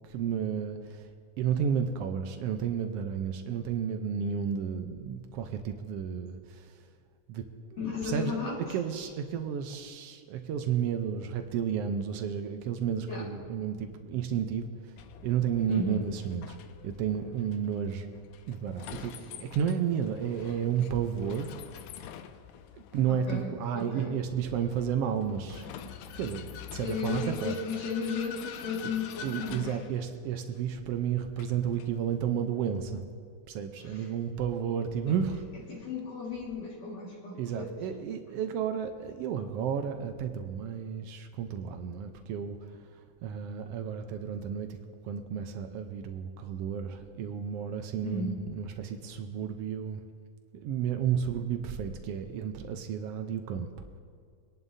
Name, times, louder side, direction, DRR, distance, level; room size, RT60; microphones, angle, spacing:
voice 1, 0.0-6.8 7.3-8.4 8.7-14.9 15.2-16.6 16.8-18.1 18.5-21.5 22.7-25.7 26.2-27.5 29.2-33.0 33.5-35.4 37.3-44.8 45.0-50.0 50.5-53.7, right 8 dB, 80° right, 6 dB, 1.3 m, -32 dB
voice 2, 7.8-9.1 13.1-13.3 15.7-16.0 19.0-19.2 23.1-24.2 26.8-29.8 33.8-34.1 35.1-35.2 35.7-37.7 48.0-48.4, left 4 dB, 60° left, -6 dB, 3.0 m, -35 dB
Vehicle, 15.0-33.0, left 9 dB, 85° left, 2.1 m, -46 dB
25.5 x 11.0 x 2.7 m, 2.1 s
omnidirectional pair, 3.7 m